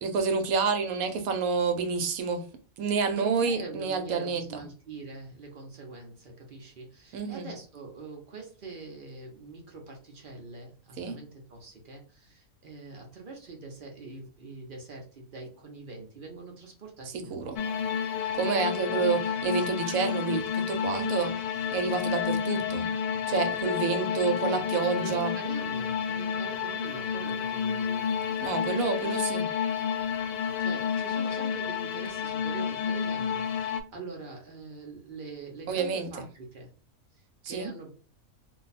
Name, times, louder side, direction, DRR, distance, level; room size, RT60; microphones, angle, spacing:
voice 1, 0.0-2.5 2.8-4.4 7.1-7.5 11.0-11.2 17.1-17.5 18.4-21.3 21.7-22.9 23.3-25.3 28.4-29.5 35.7-36.1 37.4-37.7, right 5 dB, 75° right, 6 dB, 1.1 m, -28 dB
voice 2, 3.1-17.8 24.1-24.2 24.8-28.2 29.0-29.2 30.6-36.7 37.1-37.9, right 3 dB, 50° right, 1 dB, 0.7 m, -44 dB
sound 1, 17.6-33.8, left 7 dB, 90° left, 1.1 m, -30 dB
2.6 x 2.2 x 3.9 m, 0.38 s
omnidirectional pair, 1.5 m